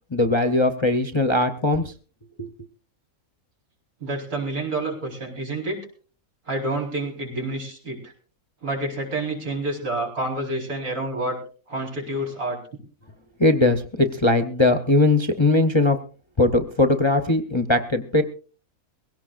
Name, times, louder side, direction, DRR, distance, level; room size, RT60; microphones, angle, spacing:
voice 1, 0.1-1.9 2.4-2.5 13.4-16.0 16.4-18.2, left 2 dB, 25° left, 6 dB, 0.7 m, -20 dB
voice 2, 4.0-5.8 6.5-8.1 8.6-11.4 11.7-12.6, right 2 dB, 85° right, -1 dB, 5.0 m, -28 dB
22.0 x 17.0 x 2.5 m, 0.39 s
omnidirectional pair, 1.5 m